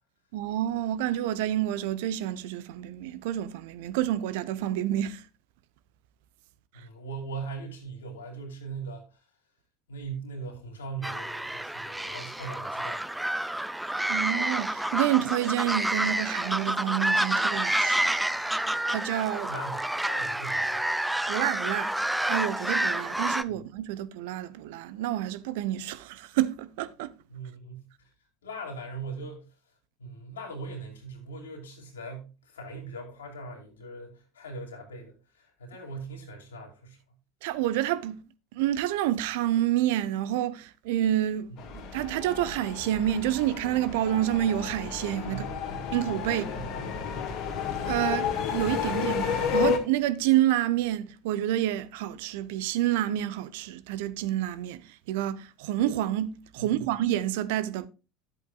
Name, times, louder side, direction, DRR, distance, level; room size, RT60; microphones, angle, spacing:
voice 1, 0.3-5.2 14.1-18.1 18.9-19.5 21.3-21.9 22.3-27.1 37.4-38.2 38.5-41.5 41.9-45.4 45.9-46.4 47.8-57.9, right 12 dB, 60° right, 0.7 m, -28 dB
voice 2, 6.7-9.2 9.9-13.0 19.4-20.9 23.5-23.6 27.3-28.1 28.4-29.5 30.0-37.0 41.5-41.6 45.2-45.9 46.3-47.3 56.6-56.9, right 3 dB, 75° left, 2.6 m, -40 dB
sound 1, 11.0-23.4, right 1 dB, 5° right, 0.5 m, -29 dB
sound 2, 41.6-49.8, left 7 dB, 50° left, 1.7 m, -31 dB
13.0 x 8.1 x 2.3 m
figure-of-eight pair, 70°, 0 cm